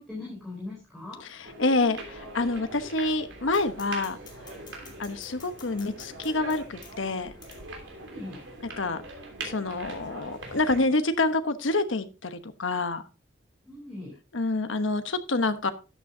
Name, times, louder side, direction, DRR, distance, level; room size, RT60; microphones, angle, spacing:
voice 1, 0.0-1.2 8.1-8.4 13.6-14.2, left 2 dB, ahead, -6 dB, 3.9 m, -39 dB
voice 2, 1.2-4.2 5.0-7.3 8.8-9.0 9.4-13.0 14.3-15.7, left 2 dB, 80° left, 10 dB, 1.1 m, -27 dB
sound 1, 1.5-10.8, right 2 dB, 75° right, 3.1 m, -42 dB
sound 2, 3.5-8.9, left 3 dB, 20° left, 2.3 m, -52 dB
12.5 x 8.9 x 2.8 m, 0.31 s
head